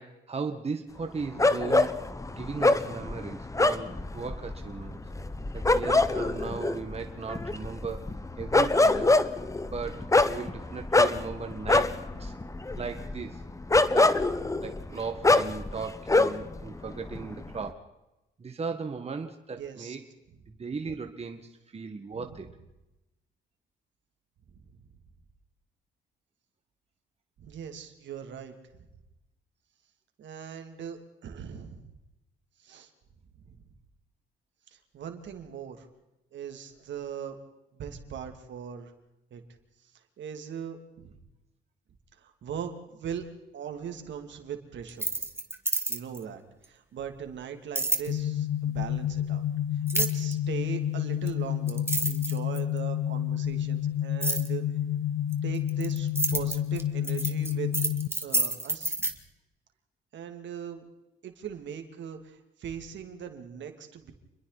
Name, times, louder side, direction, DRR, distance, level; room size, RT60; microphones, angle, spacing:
voice 1, 0.0-1.9 2.3-5.0 5.5-9.1 9.6-11.9 12.2-12.3 12.8-13.4 13.9-14.3 14.6-17.9 18.4-20.0 20.5-22.5, right 5 dB, 30° right, 5 dB, 1.7 m, -37 dB
sound 1, 1.4-16.6 16.9-17.6, left 2 dB, 15° left, 1.1 m, -25 dB
voice 2, 19.5-20.0 22.1-22.4 24.7-24.8 27.4-28.5 30.2-31.8 32.6-32.9 33.3-33.6 34.7-35.9 36.3-37.4 37.7-38.9 39.3-39.4 39.8-41.2 42.1-43.2 43.5-45.1 45.9-49.5 49.7-54.6 55.4-57.7 58.2-59.1 60.1-60.8 61.2-64.1, right 8 dB, 65° right, 5 dB, 2.8 m, -40 dB
sound 2, 44.9-46.2 47.7-48.1 49.9-50.3 51.3-51.4 51.7-52.8 54.2-54.5 55.3-59.1, right 2 dB, 10° right, 2.1 m, -29 dB
sound 3, 48.1-58.1, left 10 dB, 90° left, 0.9 m, -29 dB
28.0 x 22.0 x 4.2 m, 0.95 s
cardioid pair, 90°, 20 cm